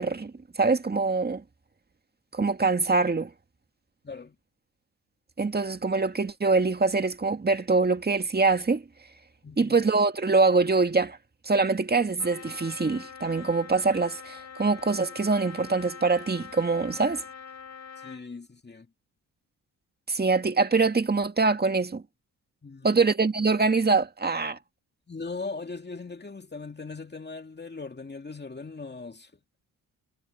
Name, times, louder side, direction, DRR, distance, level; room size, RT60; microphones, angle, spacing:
voice 1, 0.0-1.4 2.3-3.3 5.4-8.8 9.6-11.2 11.5-17.2 20.1-22.0 22.8-24.6, right 4 dB, 25° right, 2.0 m, -24 dB
voice 2, 4.0-4.4 9.4-9.8 18.0-18.9 22.6-23.0 25.1-29.3, left 4 dB, 25° left, 2.5 m, -39 dB
Trumpet, 12.2-18.2, left 6 dB, 50° left, 3.0 m, -44 dB
cardioid pair, 70°, 38 cm